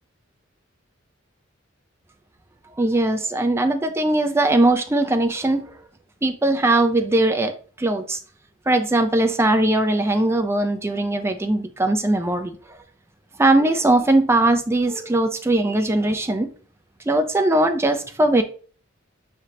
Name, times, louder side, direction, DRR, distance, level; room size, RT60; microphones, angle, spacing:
voice 1, 2.8-5.6 6.2-7.5 7.8-8.2 8.7-12.5 13.4-16.5 17.1-18.4, right 2 dB, 15° right, 0.4 m, -20 dB
5.0 x 3.2 x 2.8 m
head